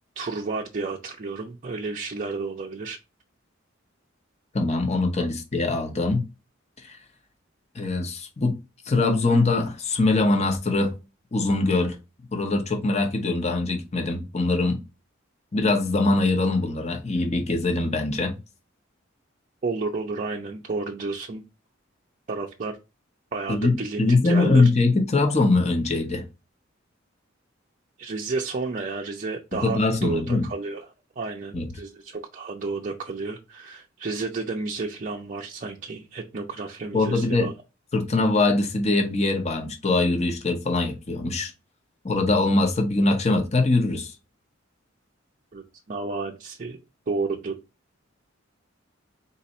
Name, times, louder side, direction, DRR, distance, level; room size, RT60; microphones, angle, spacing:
voice 1, 0.2-3.0 5.2-5.3 19.6-21.4 22.3-22.7 23.3-24.7 28.0-30.9 31.2-37.5 45.5-46.8 47.1-47.5, right 3 dB, 40° right, 0.5 m, -31 dB
voice 2, 4.5-6.2 6.9-7.0 7.7-8.5 8.9-10.9 11.3-12.0 12.3-14.8 15.5-18.4 23.5-26.2 29.6-30.5 31.5-31.7 36.9-37.5 37.9-41.5 42.0-44.1, left 2 dB, 35° left, 0.9 m, -22 dB
4.1 x 2.6 x 4.1 m
head